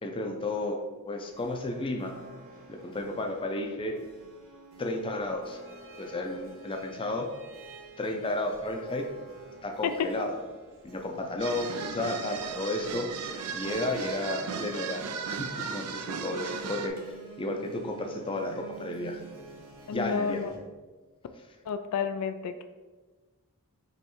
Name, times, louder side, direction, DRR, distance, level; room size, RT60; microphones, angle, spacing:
voice 1, 0.0-0.8 1.0-2.1 2.7-4.0 4.8-5.6 6.0-7.3 8.0-9.1 9.6-10.3 10.8-13.1 13.5-19.2 19.9-20.4, left 2 dB, 25° left, 3 dB, 0.5 m, -32 dB
sound 1, 1.2-20.6, right 3 dB, 65° right, 1.1 m, -51 dB
Church bell, 1.9-4.3 4.6-4.7 5.1-15.1, equal, 35° right, 0.6 m, -53 dB
sound 2, 11.4-16.9, right 6 dB, 80° right, 0.4 m, -36 dB
voice 2, 19.9-20.5 21.7-22.6, left 6 dB, 85° left, 9 dB, 0.3 m, -30 dB
5.4 x 3.1 x 3.0 m, 1.3 s
head